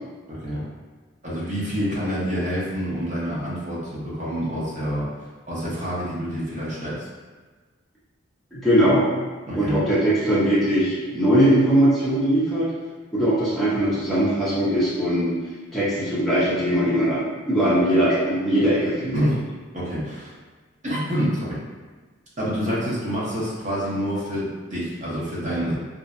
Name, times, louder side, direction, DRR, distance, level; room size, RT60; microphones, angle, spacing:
voice 1, 0.3-0.7 1.2-5.1 5.5-7.1 9.5-9.8 19.1-19.4 19.7-20.3 20.8-21.6 22.4-25.8, equal, 35° right, -8 dB, 0.7 m, -27 dB
voice 2, 8.5-9.1 9.5-12.7 13.1-15.4 15.7-17.2 17.5-19.2, right 1 dB, ahead, -11 dB, 0.5 m, -20 dB
2.5 x 2.1 x 2.4 m, 1.4 s
head